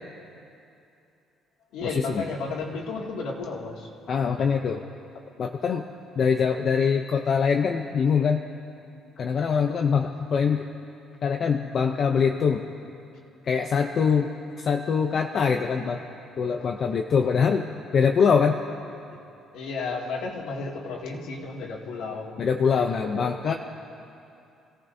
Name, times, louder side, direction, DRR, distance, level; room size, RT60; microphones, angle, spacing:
voice 1, 1.7-3.9 16.6-16.7 19.1-19.2 19.5-22.4 22.7-23.4, left 3 dB, 80° left, -2 dB, 2.3 m, -33 dB
voice 2, 4.1-4.8 5.4-5.8 6.2-8.4 9.2-10.6 11.2-12.6 13.4-16.0 16.4-17.6 17.9-18.6 22.4-23.5, left 6 dB, 35° left, 3 dB, 0.6 m, -23 dB
26.5 x 17.0 x 2.7 m, 2.6 s
cardioid pair, 170°, 0 cm